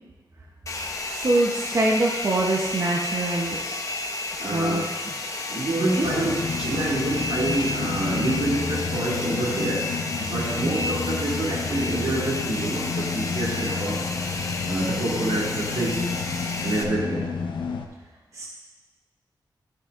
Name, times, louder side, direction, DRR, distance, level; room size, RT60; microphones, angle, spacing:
Domestic sounds home sounds, 0.7-16.8, left 2 dB, 40° left, 0.7 m, -32 dB
voice 1, 1.1-3.6 4.5-4.8 5.8-6.1 10.3-10.8 18.3-18.5, right 2 dB, 40° right, -2 dB, 0.8 m, -24 dB
voice 2, 4.4-4.8 5.5-9.9 10.2-14.0 14.7-16.1 16.6-17.3, right 2 dB, 80° right, -5 dB, 2.5 m, -27 dB
sound 1, 6.0-17.9, left 5 dB, 80° left, 0.7 m, -30 dB
12.5 x 6.7 x 2.5 m, 1.2 s
wide cardioid pair, 170°, 8 cm